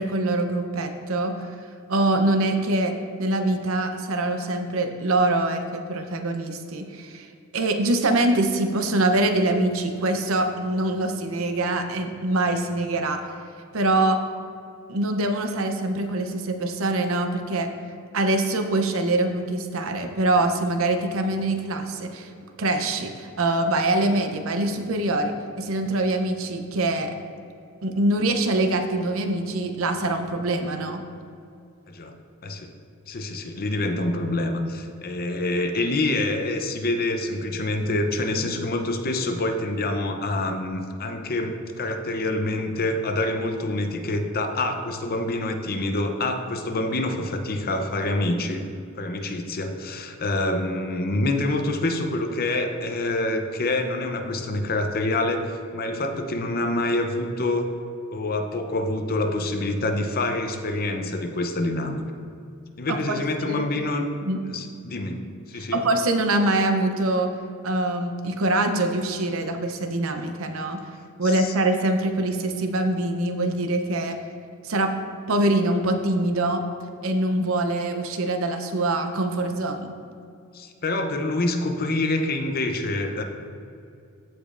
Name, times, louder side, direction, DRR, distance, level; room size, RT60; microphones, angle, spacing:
voice 1, 0.0-1.4 1.9-2.9 3.2-7.3 7.5-13.2 13.7-14.2 14.9-17.7 18.1-22.3 22.6-27.1 27.8-31.0 62.9-63.2 63.5-63.6 64.2-64.4 65.5-67.3 67.6-70.8 71.2-74.2 74.6-75.0 75.3-76.6 77.0-79.9, right 2 dB, 65° right, 6 dB, 0.7 m, -24 dB
voice 2, 31.9-32.2 32.4-32.7 33.1-48.7 49.0-57.7 58.1-62.0 62.8-64.1 64.5-65.8 71.2-71.5 80.5-83.2, left 2 dB, 45° left, 5 dB, 0.6 m, -26 dB
15.0 x 5.1 x 2.5 m, 2.5 s
head